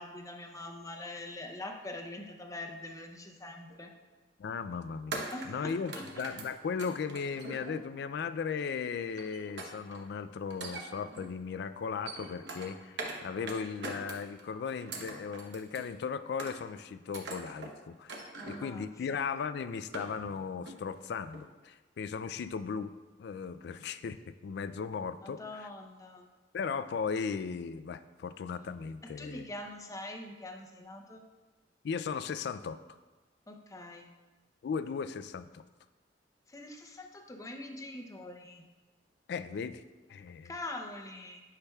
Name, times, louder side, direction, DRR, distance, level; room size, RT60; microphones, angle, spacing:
voice 1, 0.0-3.9 5.3-6.0 18.4-19.2 25.2-26.3 29.2-31.2 33.5-34.1 36.5-38.6 40.4-41.4, left 2 dB, 20° left, 3 dB, 0.6 m, -43 dB
sound 1, 3.7-3.9 5.1-8.1 9.2-10.0 10.5-11.4 11.8-13.2 13.5-14.4 14.8-15.9 16.4-16.8 17.1-17.7 18.1-18.7 19.2-19.3 19.7-20.4 20.7-21.0 21.3-21.4, right 3 dB, 70° right, 0.9 m, -43 dB
voice 2, 4.4-5.2 5.5-5.9 6.2-22.9 23.2-24.2 24.4-25.7 26.5-29.5 31.8-32.8 34.6-35.6 39.3-39.8 40.1-40.5, left 6 dB, 65° left, 13 dB, 0.3 m, -37 dB
9.9 x 5.7 x 2.3 m, 1.2 s
head